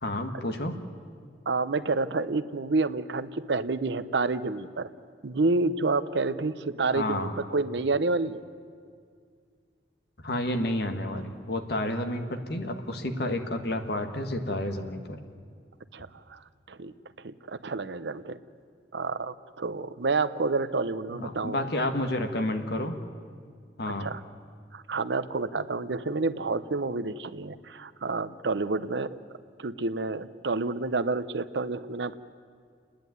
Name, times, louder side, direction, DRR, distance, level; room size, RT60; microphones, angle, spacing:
voice 1, 0.0-0.8 6.8-7.3 10.2-15.2 21.1-23.0 23.8-24.1, left 1 dB, 65° left, 6 dB, 1.6 m, -30 dB
voice 2, 1.5-4.9 5.2-8.4 15.9-16.4 16.7-16.9 17.2-18.4 18.9-21.6 24.0-24.2 24.7-29.2 29.6-32.2, right 3 dB, 80° right, 14 dB, 0.7 m, -29 dB
29.5 x 10.5 x 9.3 m, 2.1 s
head